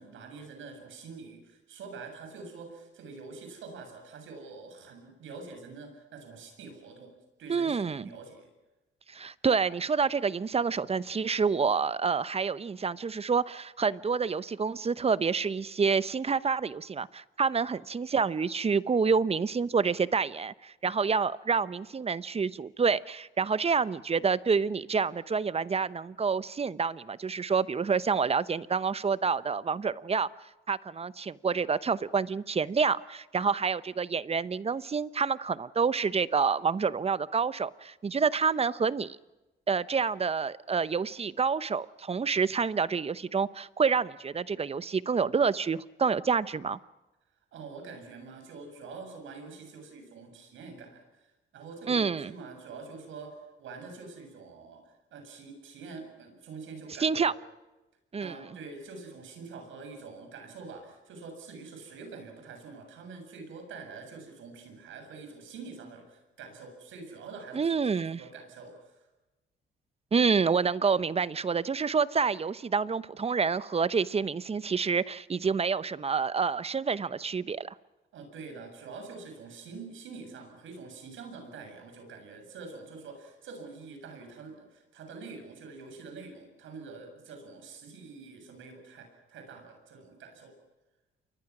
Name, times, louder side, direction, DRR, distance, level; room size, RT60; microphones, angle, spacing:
voice 1, 0.0-7.1 7.4-8.5 47.5-57.4 58.2-69.0 78.1-90.5, right 4 dB, 80° right, 7.4 m, -46 dB
voice 2, 7.5-8.1 9.1-30.3 30.7-39.2 39.7-46.8 51.9-52.3 57.0-57.3 58.1-58.4 67.5-68.2 70.1-77.7, right 5 dB, 30° right, 0.8 m, -28 dB
28.5 x 23.0 x 6.1 m
cardioid pair, 90°, 20 cm